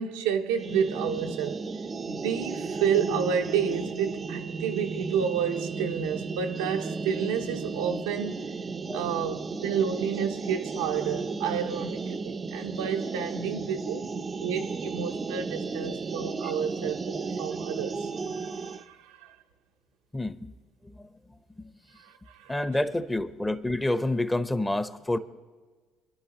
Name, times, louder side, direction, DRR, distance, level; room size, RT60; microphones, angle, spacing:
voice 1, 0.0-1.6 2.1-8.4 8.9-14.1 14.4-19.3 22.0-22.1 22.4-22.5, right 7 dB, 85° right, 0.7 m, -30 dB
sound 1, 0.6-18.8, right 4 dB, 35° right, 0.6 m, -34 dB
voice 2, 20.1-20.5 20.8-21.1 22.5-25.2, left 1 dB, 15° left, 0.9 m, -28 dB
25.5 x 10.5 x 3.0 m
supercardioid pair, 70°, 0 cm